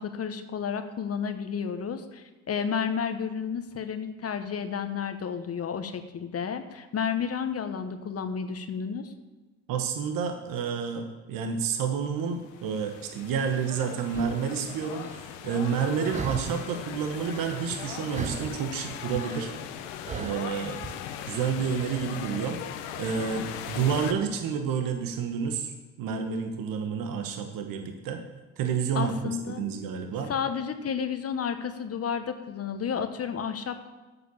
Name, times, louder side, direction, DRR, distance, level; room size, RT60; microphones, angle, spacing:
voice 1, 0.0-9.1 28.9-29.6 30.3-33.9, left 7 dB, 40° left, 9 dB, 1.1 m, -31 dB
voice 2, 9.7-19.5 20.1-20.8 21.2-22.6 23.0-25.7 26.0-28.2 28.6-30.3, right 6 dB, 65° right, 5 dB, 1.2 m, -29 dB
sound 1, 12.3-24.1, left 9 dB, 80° left, 0.9 m, -39 dB
sound 2, 14.1-14.4 15.0-15.2 16.1-16.8 17.0-17.9 18.1-20.9, right 7 dB, 20° right, 0.4 m, -38 dB
8.8 x 7.0 x 7.0 m, 1.2 s
hypercardioid pair, 65°, 36 cm